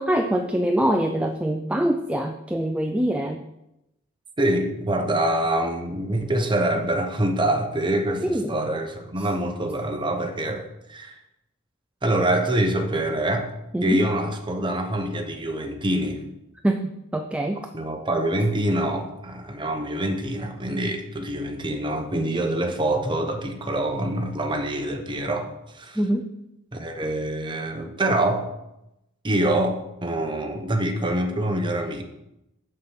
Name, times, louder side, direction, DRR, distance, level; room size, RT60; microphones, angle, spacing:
voice 1, 0.0-3.4 8.2-8.5 13.7-14.0 16.6-17.7 26.0-26.3, right 1 dB, 5° right, 5 dB, 0.4 m, -24 dB
voice 2, 4.4-11.2 12.0-13.5 13.8-16.2 17.7-26.0 26.7-28.5 29.2-32.0, right 1 dB, 20° right, 4 dB, 1.0 m, -25 dB
6.6 x 5.8 x 7.1 m, 0.89 s
head